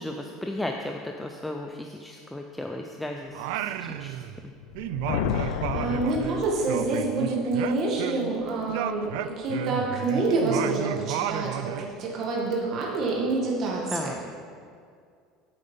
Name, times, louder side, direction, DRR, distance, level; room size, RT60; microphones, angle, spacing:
voice 1, 0.0-4.2 13.9-14.1, left 1 dB, 5° left, 2 dB, 0.4 m, -35 dB
Singing, 3.3-4.5 4.7-8.4 8.7-11.9, right 11 dB, 70° right, 0.4 m, -32 dB
sound 1, 4.6-7.2, left 12 dB, 85° left, 0.3 m, -31 dB
voice 2, 5.3-14.2, right 3 dB, 35° right, -2 dB, 1.8 m, -27 dB
8.5 x 8.0 x 5.4 m, 2.2 s
cardioid pair, 170°, 0 cm